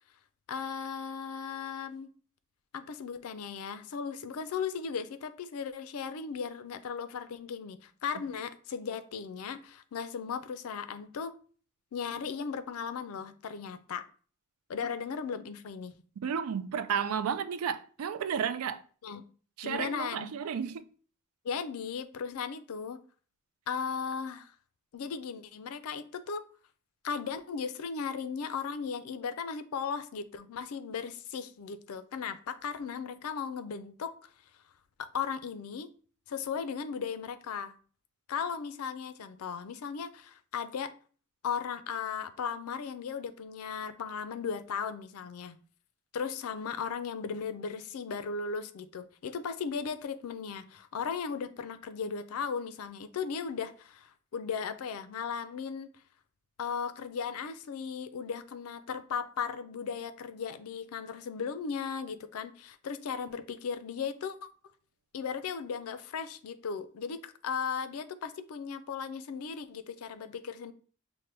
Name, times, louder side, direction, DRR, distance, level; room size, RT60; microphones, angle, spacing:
voice 1, 0.5-2.1 2.7-11.3 11.9-14.0 14.7-15.9 19.0-19.2 19.6-20.3 21.4-23.0 23.7-24.5 24.9-26.4 27.0-34.3 35.0-35.9 36.3-37.8 38.3-40.9 41.4-45.6 46.1-55.9 56.6-64.4 65.1-70.7, left 6 dB, 80° left, 0.4 m, -36 dB
voice 2, 16.2-18.8 19.6-20.9, right 7 dB, 80° right, 0.4 m, -32 dB
5.9 x 2.1 x 3.2 m
head